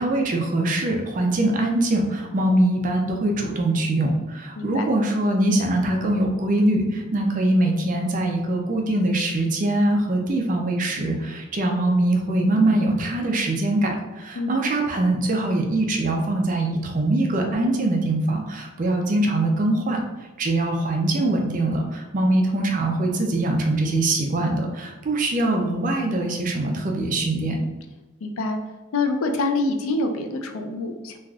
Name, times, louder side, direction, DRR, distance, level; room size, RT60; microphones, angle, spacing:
voice 1, 0.0-20.0 20.4-27.6, right 1 dB, 35° right, 2 dB, 0.4 m, -22 dB
voice 2, 4.6-4.9 14.4-14.6 28.2-28.6 28.9-31.2, left 2 dB, 70° left, 5 dB, 0.4 m, -25 dB
3.2 x 2.4 x 2.3 m, 1.2 s
head